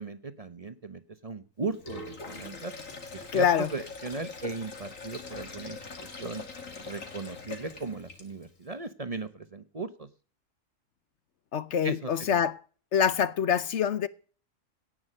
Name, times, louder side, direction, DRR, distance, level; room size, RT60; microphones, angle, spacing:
voice 1, 0.0-2.7 3.1-5.8 6.2-6.4 6.9-10.1 11.8-12.4, right 3 dB, 30° right, 0.9 m, -37 dB
Sink (filling or washing), 1.7-8.6, left 4 dB, 80° left, 2.7 m, -43 dB
voice 2, 3.3-3.7 11.5-12.6 12.9-14.1, left 8 dB, 65° left, 1.0 m, -25 dB
17.5 x 6.1 x 6.6 m
omnidirectional pair, 1.3 m